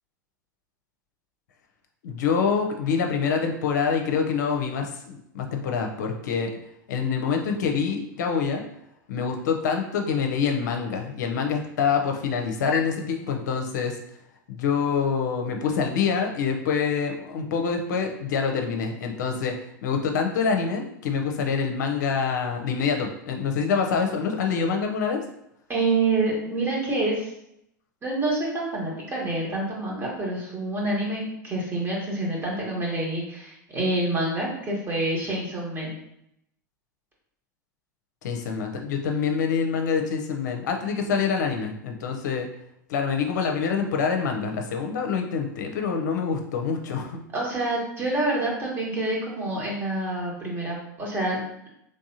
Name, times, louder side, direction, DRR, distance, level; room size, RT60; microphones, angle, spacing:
voice 1, 2.0-6.5 6.9-8.6 9.1-13.9 14.5-19.5 19.8-25.2 38.2-42.5 42.9-47.2, left 6 dB, 70° left, 3 dB, 0.6 m, -26 dB
voice 2, 25.7-27.3 28.0-36.0 47.3-51.7, right 2 dB, 25° right, -3 dB, 1.4 m, -27 dB
3.5 x 3.2 x 2.8 m, 0.78 s
hypercardioid pair, 90°, 10 cm